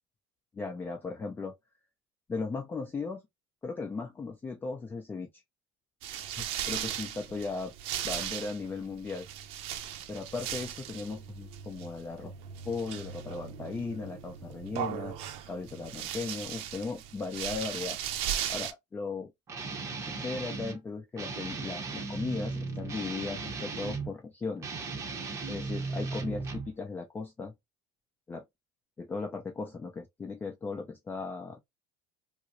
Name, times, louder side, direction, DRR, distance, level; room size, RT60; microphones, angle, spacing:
voice 1, 0.5-1.5 2.3-3.2 3.6-5.3 6.4-7.7 8.0-9.3 10.1-12.3 12.6-15.2 15.5-18.0 18.5-19.3 20.1-24.7 25.5-27.5 28.3-28.4 29.0-31.6, left 4 dB, 15° left, 0.5 m, -37 dB
sound 1, 6.0-18.7, right 10 dB, 60° right, 0.5 m, -38 dB
Guitar, 19.5-20.8 21.2-24.1 24.6-26.7, right 4 dB, 25° right, 0.8 m, -36 dB
4.5 x 2.0 x 2.6 m
supercardioid pair, 130°, 11 cm